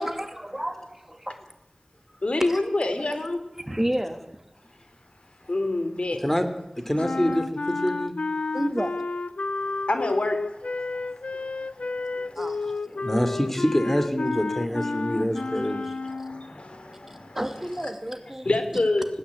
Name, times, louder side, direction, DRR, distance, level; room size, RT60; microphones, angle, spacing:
voice 1, 0.0-1.5 2.4-3.2 3.7-4.4 8.5-8.9 12.4-12.6 17.3-18.8, right 1 dB, 15° right, 7 dB, 2.7 m, -31 dB
voice 2, 2.2-3.4 5.5-6.2 9.9-11.3 11.6-12.4 12.9-13.1 16.0-17.4 18.5-19.1, left 2 dB, 70° left, 7 dB, 3.7 m, -28 dB
voice 3, 6.9-8.1 12.9-15.9, equal, 10° left, 8 dB, 3.2 m, -25 dB
sound 1, 7.0-16.5, left 3 dB, 85° left, 0.7 m, -31 dB
20.0 x 17.0 x 8.7 m, 0.86 s
wide cardioid pair, 55°, 2 cm